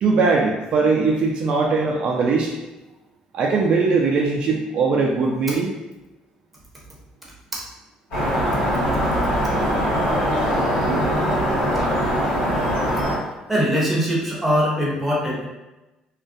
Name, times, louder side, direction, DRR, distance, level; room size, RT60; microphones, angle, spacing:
voice 1, 0.0-2.5 3.3-5.7, right 4 dB, 55° right, -1 dB, 0.3 m, -20 dB
sound 1, 8.1-13.2, equal, 90° left, 1.3 m, -21 dB
voice 2, 13.5-15.5, equal, 5° right, -5 dB, 0.7 m, -21 dB
2.3 x 2.1 x 2.5 m, 1.0 s
cardioid pair, 130°, 2 cm